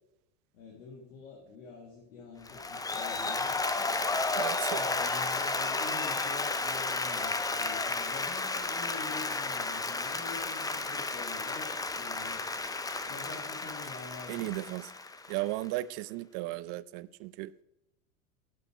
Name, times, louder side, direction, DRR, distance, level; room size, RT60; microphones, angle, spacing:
voice 1, 0.5-3.5 4.7-12.4 13.1-14.6, left 5 dB, 75° left, 2.1 m, -46 dB
Applause, 2.5-15.6, left 3 dB, 10° left, 0.6 m, -33 dB
voice 2, 4.4-4.8 14.3-14.9 15.3-17.6, right 18 dB, 55° right, 0.5 m, -35 dB
10.0 x 6.7 x 4.9 m
hypercardioid pair, 85°, 40 cm